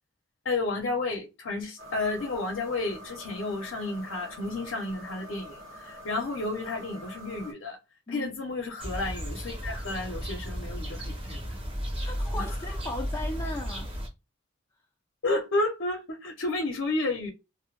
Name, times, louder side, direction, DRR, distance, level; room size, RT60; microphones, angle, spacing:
voice 1, 0.4-7.8 8.1-11.6 12.0-12.1 12.4-12.5 15.2-17.3, left 2 dB, 70° left, 0.6 m, -31 dB
sound 1, 1.8-7.5, equal, 70° right, 0.8 m, -46 dB
sound 2, 8.8-14.1, equal, 30° right, 0.7 m, -34 dB
voice 2, 12.0-13.9, left 2 dB, 15° left, 0.4 m, -36 dB
2.1 x 2.1 x 2.9 m
head